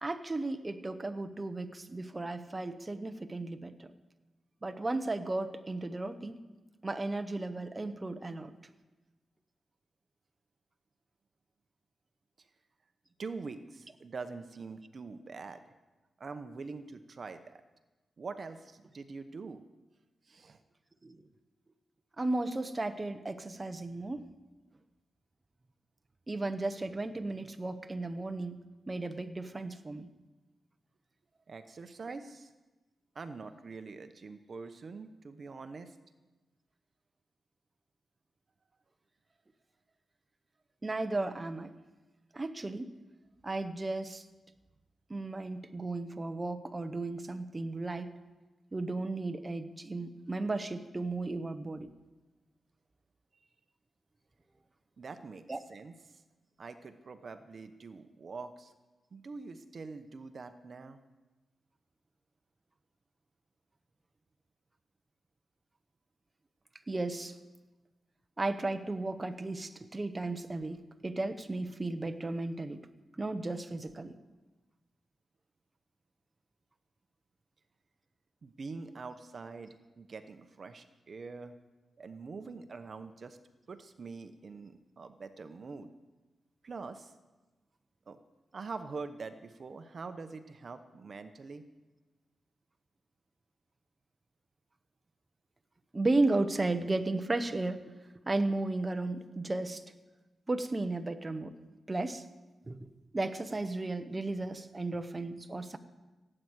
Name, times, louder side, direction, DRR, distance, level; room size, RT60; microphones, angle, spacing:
voice 1, 0.0-3.9 4.6-6.4 6.8-8.5 21.0-21.2 22.2-24.3 26.3-28.6 28.9-30.1 40.8-41.7 42.3-42.9 43.4-44.2 45.1-48.1 48.7-51.9 55.5-55.6 66.9-67.4 68.4-72.8 73.2-74.2 95.9-97.8 98.3-99.8 100.5-101.5 101.9-102.2 102.7-102.9 103.1-105.8, right 2 dB, 25° right, 8 dB, 0.9 m, -34 dB
voice 2, 13.2-15.7 16.2-17.6 18.2-19.6 20.2-20.6 31.5-32.5 33.1-36.0 53.3-53.5 55.0-56.2 56.6-58.7 59.1-61.0 78.4-81.5 82.0-83.4 83.7-85.9 86.6-87.1 88.1-88.2 88.5-91.6, right 4 dB, 50° right, 9 dB, 0.9 m, -44 dB
17.0 x 8.8 x 8.0 m, 1.1 s
wide cardioid pair, 100°, 0 cm